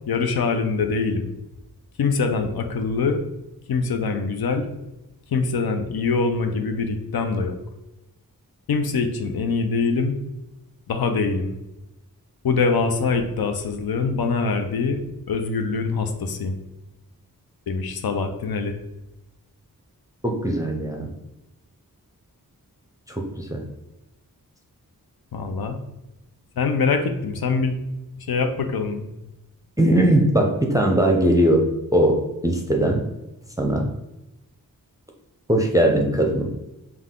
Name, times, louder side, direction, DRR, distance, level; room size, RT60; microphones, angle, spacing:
voice 1, 0.1-1.3 2.0-3.2 3.7-4.7 5.3-7.6 8.7-10.2 10.9-11.5 12.4-15.0 15.3-16.6 17.7-18.8 25.3-25.8 26.6-27.7 28.2-29.0, left 4 dB, 90° left, 6 dB, 0.6 m, -24 dB
voice 2, 20.2-21.1 23.1-23.6 29.8-33.0 33.6-33.9 35.5-36.5, right 1 dB, 10° right, 1 dB, 0.5 m, -20 dB
5.5 x 2.3 x 3.6 m, 0.95 s
wide cardioid pair, 85°, 36 cm